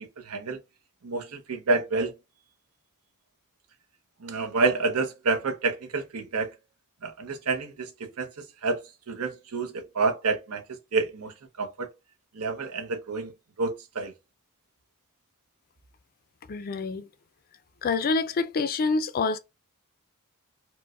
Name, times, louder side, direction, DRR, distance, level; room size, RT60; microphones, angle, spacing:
voice 1, 0.2-0.6 1.0-2.1 4.2-6.5 7.0-8.8 9.1-11.9 12.3-13.3 13.6-14.1, right 3 dB, 80° right, 0.7 m, -28 dB
voice 2, 16.5-17.0 17.8-19.4, left 4 dB, 40° left, 0.4 m, -26 dB
4.5 x 2.1 x 2.3 m
head